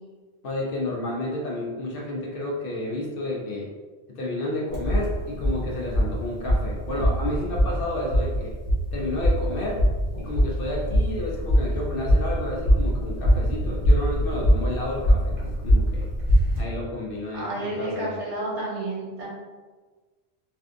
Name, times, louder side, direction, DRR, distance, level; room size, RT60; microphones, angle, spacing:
voice 1, 0.4-3.7 4.1-8.6 8.9-9.8 10.2-16.1 16.6-18.2, left 1 dB, 60° left, -2 dB, 0.7 m, -31 dB
sound 1, 4.7-16.6, equal, 60° right, 1.2 m, -23 dB
voice 2, 17.3-19.3, right 1 dB, 75° right, -5 dB, 1.3 m, -30 dB
3.4 x 2.6 x 2.4 m, 1.4 s
omnidirectional pair, 1.2 m